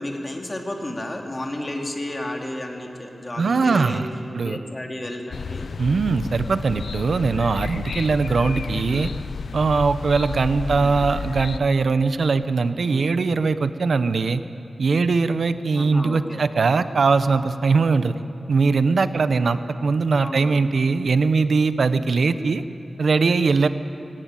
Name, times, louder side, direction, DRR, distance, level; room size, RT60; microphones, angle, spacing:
voice 1, 0.0-4.0 4.4-5.7 10.6-10.9 15.7-16.5 20.2-20.6, left 1 dB, 30° left, 2 dB, 2.7 m, -32 dB
voice 2, 3.4-4.1 4.3-4.6 5.8-9.1 9.5-14.4 14.8-18.1 18.5-22.6 23.0-23.7, right 4 dB, 75° right, 12 dB, 0.8 m, -21 dB
sound 1, 5.3-11.6, left 5 dB, 85° left, 0.5 m, -31 dB
19.0 x 17.5 x 9.1 m, 2.7 s
wide cardioid pair, 75°, 0 cm